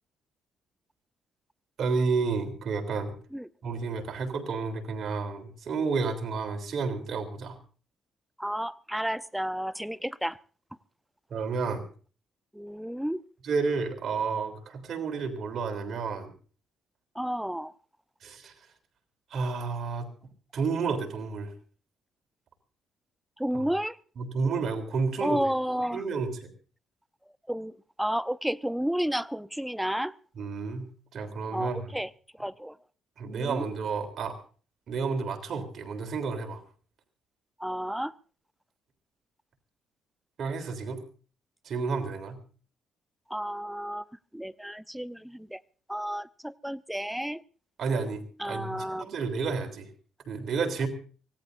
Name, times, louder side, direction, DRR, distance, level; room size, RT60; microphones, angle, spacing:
voice 1, 1.8-3.2 3.6-7.6 11.3-11.8 13.4-16.3 18.2-18.5 19.3-20.1 20.5-21.5 23.5-23.6 24.2-25.4 25.9-26.3 30.4-31.9 33.2-34.4 34.9-36.6 40.4-41.0 41.6-42.4 47.8-49.9 50.2-50.9, right 4 dB, 60° right, 3.4 m, -31 dB
voice 2, 8.4-10.4 12.5-13.2 17.1-17.7 23.4-24.0 25.2-26.0 27.5-27.7 28.0-30.2 31.5-32.1 32.4-32.8 33.2-33.7 37.6-38.1 43.3-45.6 45.9-47.4 48.4-49.0, equal, 5° right, 0.7 m, -31 dB
24.5 x 17.5 x 2.6 m
cardioid pair, 90°, 0 cm